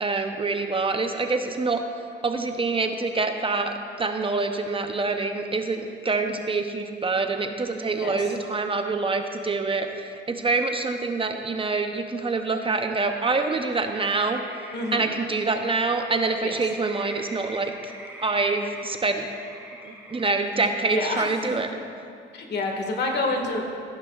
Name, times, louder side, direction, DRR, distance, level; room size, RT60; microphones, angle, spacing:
voice 1, 0.0-1.8 2.2-14.4 14.9-17.7 18.2-19.3 19.8-21.7, right 3 dB, 25° right, 5 dB, 0.7 m, -26 dB
sound 1, 13.2-20.7, right 1 dB, 10° right, 2.2 m, -44 dB
voice 2, 14.7-15.1 16.4-16.6 20.9-21.3 22.3-23.6, left 2 dB, 60° left, 2 dB, 1.8 m, -27 dB
15.0 x 10.5 x 2.4 m, 2.4 s
cardioid pair, 90°, 20 cm